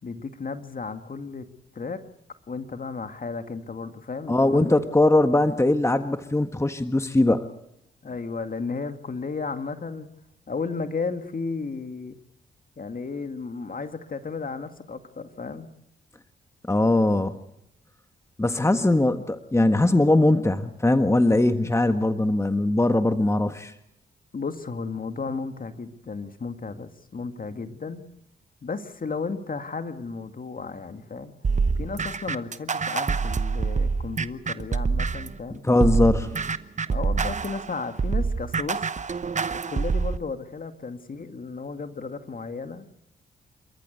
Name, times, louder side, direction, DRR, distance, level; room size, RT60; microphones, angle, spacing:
voice 1, 0.0-1.5 1.7-2.0 2.5-4.8 8.0-10.1 10.5-12.2 12.8-15.7 24.3-28.1 28.6-31.4 31.7-35.6 36.9-38.9 39.5-42.9, left 4 dB, 45° left, 7 dB, 2.1 m, -34 dB
voice 2, 4.3-7.5 16.7-17.3 18.4-23.7 35.6-36.3, left 2 dB, 15° left, 8 dB, 1.5 m, -21 dB
sound 1, 31.4-35.4 35.8-40.2, right 4 dB, 35° right, 1.0 m, -26 dB
29.0 x 14.0 x 8.2 m, 0.81 s
supercardioid pair, 45°, 20 cm